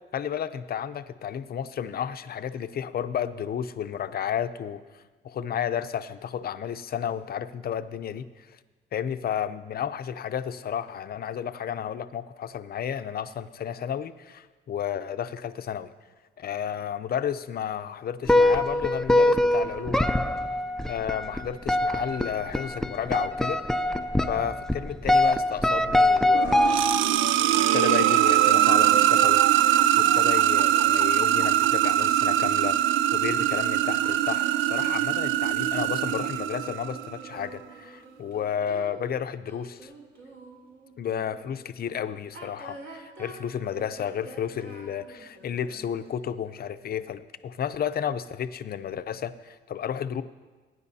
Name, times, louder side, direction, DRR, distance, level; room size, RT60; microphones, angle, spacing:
voice 1, 0.1-8.6 8.9-15.9 16.4-20.2 20.9-23.6 24.3-26.9 27.7-39.9 41.0-50.2, left 8 dB, 50° left, 11 dB, 0.6 m, -32 dB
sound 1, 18.3-27.2, left 1 dB, ahead, 0.4 m, -23 dB
sound 2, 26.3-37.1, right 12 dB, 75° right, 0.5 m, -22 dB
sound 3, 34.0-41.5 42.2-46.2, right 2 dB, 60° right, 3.9 m, -47 dB
20.5 x 9.6 x 2.8 m, 1.3 s
cardioid pair, 90°, 20 cm